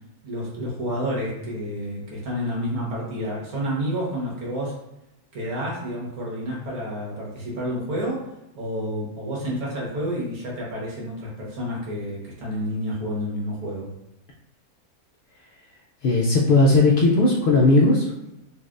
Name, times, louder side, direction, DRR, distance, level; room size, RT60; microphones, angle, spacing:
voice 1, 0.2-4.8 5.3-8.3 8.5-13.9, equal, 90° right, -4 dB, 1.6 m, -29 dB
voice 2, 16.0-18.1, left 2 dB, 80° left, -3 dB, 0.4 m, -17 dB
4.0 x 2.6 x 2.5 m, 0.91 s
omnidirectional pair, 1.5 m